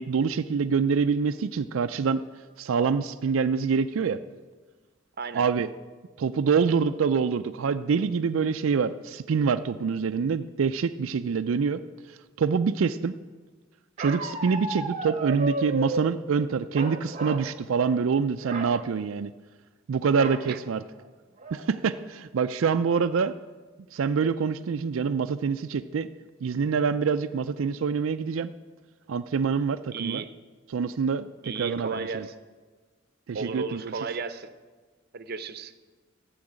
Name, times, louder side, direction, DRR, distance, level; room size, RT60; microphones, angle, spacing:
voice 1, 0.0-2.2 2.6-4.2 5.3-5.7 6.2-11.8 12.4-13.1 14.0-19.3 19.9-20.8 21.5-23.3 23.9-26.1 26.4-28.5 29.1-30.2 30.7-32.3 33.3-33.9, right 5 dB, 90° right, 9 dB, 0.4 m, -26 dB
Bark, 14.0-16.1 16.7-17.5 17.8-18.0 18.4-18.7 20.2-20.5 21.0-21.1 21.4-21.9, right 1 dB, 35° right, 1.1 m, -33 dB
voice 2, 29.9-30.3 31.4-32.3 33.3-34.5 35.1-35.7, right 4 dB, 50° right, 11 dB, 0.8 m, -34 dB
13.0 x 7.1 x 8.8 m, 1.4 s
head